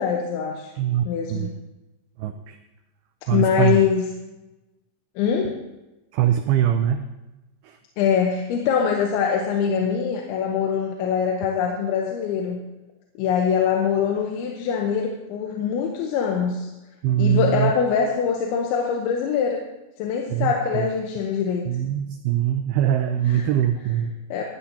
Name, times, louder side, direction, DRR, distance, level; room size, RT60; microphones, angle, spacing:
voice 1, 0.0-0.7 1.1-1.5 3.3-4.1 5.2-5.6 8.0-12.6 13.2-16.7 17.2-19.6 20.0-21.7 23.2-23.5 24.3-24.4, left 7 dB, 90° left, 1 dB, 3.3 m, -23 dB
voice 2, 0.8-1.5 2.2-2.6 3.3-3.8 6.1-7.1 7.6-7.8 17.0-17.7 20.3-20.9 21.7-24.1, right 10 dB, 90° right, 7 dB, 2.2 m, -22 dB
18.0 x 12.5 x 2.9 m, 1.0 s
omnidirectional pair, 5.2 m